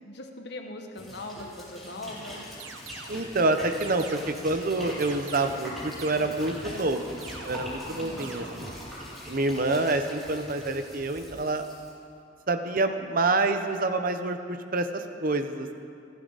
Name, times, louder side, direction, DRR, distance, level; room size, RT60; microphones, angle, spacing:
voice 1, 0.0-2.5 7.9-8.5, left 2 dB, 60° left, 3 dB, 1.3 m, -41 dB
sound 1, 1.0-11.9, equal, ahead, 4.9 m, -42 dB
sound 2, 2.6-3.3 3.8-4.5 5.0-5.7 6.0-6.6 7.2-7.9 8.2-8.9, right 4 dB, 80° right, 1.1 m, -44 dB
voice 2, 3.1-7.2 7.5-8.7 9.3-11.6 12.5-15.7, right 2 dB, 50° right, 7 dB, 0.9 m, -27 dB
29.0 x 9.7 x 4.1 m, 2.4 s
head